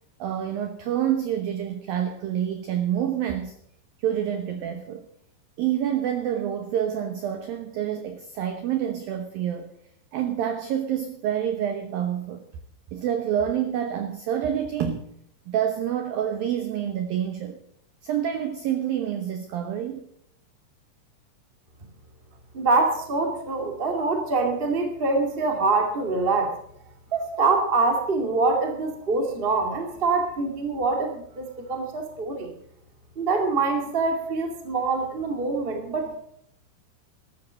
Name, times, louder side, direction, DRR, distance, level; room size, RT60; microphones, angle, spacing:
voice 1, 0.2-3.5 4.0-5.1 5.6-9.7 10.1-12.4 12.9-15.1 15.5-17.6 18.0-20.1, right 10 dB, 75° right, 2.1 m, -27 dB
voice 2, 22.5-26.5 27.1-32.5 33.1-36.2, right 3 dB, 25° right, 1.2 m, -25 dB
13.0 x 13.0 x 6.4 m
omnidirectional pair, 5.6 m